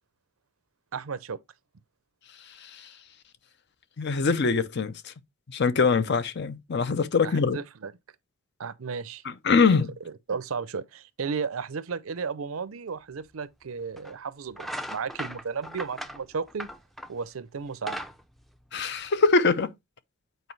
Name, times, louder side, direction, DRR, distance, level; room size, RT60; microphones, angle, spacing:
voice 1, 0.9-1.4 7.2-7.9 8.6-9.2 9.6-9.8 10.0-16.7 17.1-18.0, right 5 dB, 80° right, 0.6 m, -34 dB
voice 2, 4.0-5.1 5.5-7.6 9.2-9.9 18.7-19.7, left 4 dB, 55° left, 0.6 m, -23 dB
sound 1, 13.2-13.3 14.0-14.2 14.5-17.2 17.6-19.3, equal, ahead, 0.4 m, -38 dB
8.2 x 4.6 x 3.2 m
head